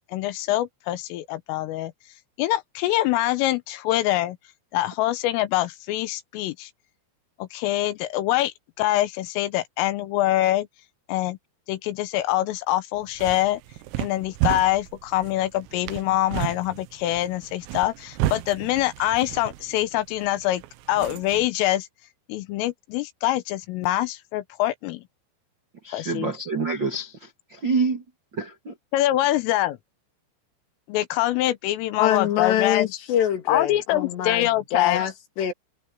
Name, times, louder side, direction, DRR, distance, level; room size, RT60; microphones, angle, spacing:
voice 1, 0.1-1.9 2.4-4.4 4.7-6.7 7.4-10.7 11.1-11.4 11.7-13.6 14.0-20.6 20.9-21.9 22.3-25.0 25.9-26.3 28.9-29.8 30.9-32.9 33.5-35.0, left 15 dB, 80° left, 3.7 m, -24 dB
sound 1, 13.0-21.5, right 14 dB, 90° right, 3.7 m, -33 dB
voice 2, 25.8-27.1 27.5-28.0 28.4-28.7, right 4 dB, 45° right, 1.4 m, -26 dB
voice 3, 32.0-35.5, left 10 dB, 60° left, 4.4 m, -25 dB
omnidirectional pair, 5.9 m